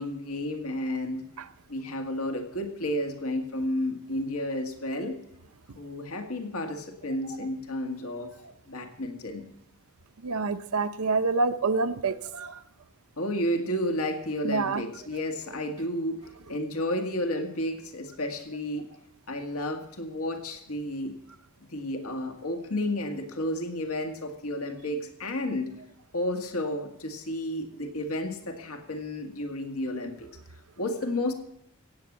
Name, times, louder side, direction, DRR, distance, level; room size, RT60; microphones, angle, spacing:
voice 1, 0.0-1.2 1.7-5.2 5.8-8.3 8.7-9.4 13.2-16.2 16.5-18.9 19.3-21.2 21.7-25.7 26.1-30.3 30.8-31.3, left 1 dB, 80° left, 4 dB, 1.8 m, -31 dB
voice 2, 10.2-12.6 14.4-14.8, right 4 dB, 75° right, 10 dB, 0.8 m, -27 dB
16.5 x 8.7 x 7.3 m, 0.74 s
head